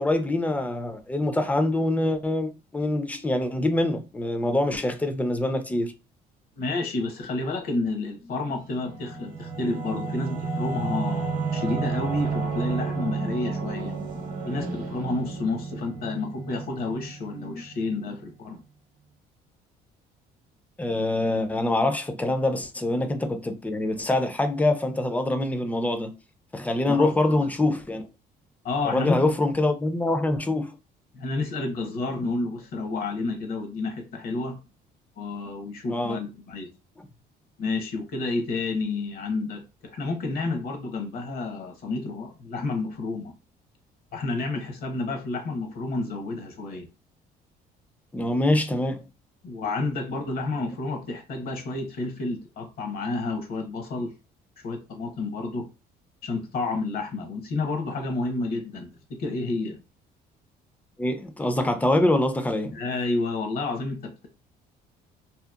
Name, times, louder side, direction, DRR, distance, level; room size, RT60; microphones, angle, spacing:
voice 1, 0.0-5.9 20.8-26.1 26.5-28.0 28.8-30.8 35.9-36.2 48.1-49.0 61.0-62.8, left 2 dB, 10° left, 0.4 m, -25 dB
voice 2, 6.6-14.0 14.4-18.6 26.9-27.4 28.6-29.3 31.1-34.6 35.2-36.7 37.6-43.3 44.1-46.9 49.4-54.1 54.6-55.7 56.2-59.8 62.7-64.3, left 3 dB, 60° left, 0.8 m, -30 dB
Singing / Musical instrument, 8.7-17.9, right 4 dB, 55° right, 0.7 m, -31 dB
2.7 x 2.0 x 2.3 m
cardioid pair, 110°, 17 cm